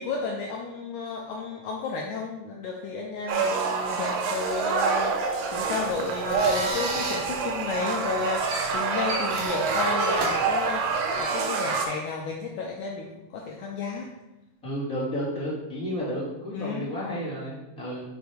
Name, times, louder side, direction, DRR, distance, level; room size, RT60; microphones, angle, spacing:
voice 1, 0.0-14.1 16.5-17.0, left 4 dB, 85° left, -1 dB, 1.7 m, -32 dB
sound 1, 3.3-11.9, right 4 dB, 85° right, 2.9 m, -27 dB
sound 2, 5.5-11.2, right 2 dB, 65° right, 2.4 m, -35 dB
voice 2, 14.6-18.0, equal, ahead, -9 dB, 1.6 m, -32 dB
6.1 x 4.5 x 5.0 m, 0.99 s
omnidirectional pair, 4.4 m